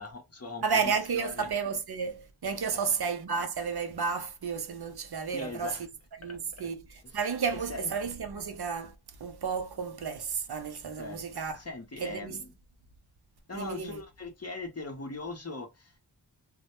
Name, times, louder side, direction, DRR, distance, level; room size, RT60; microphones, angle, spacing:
voice 1, 0.0-1.5 2.8-2.9 5.3-5.8 6.3-6.4 7.0-7.2 7.7-7.9 11.0-11.2 11.6-12.5 13.5-15.9, left 3 dB, 35° left, 0.6 m, -40 dB
voice 2, 0.6-5.8 6.2-8.9 9.2-11.7 12.0-12.4 13.5-14.0, right 5 dB, 60° right, 0.5 m, -32 dB
2.1 x 2.1 x 2.8 m
wide cardioid pair, 55°, 45 cm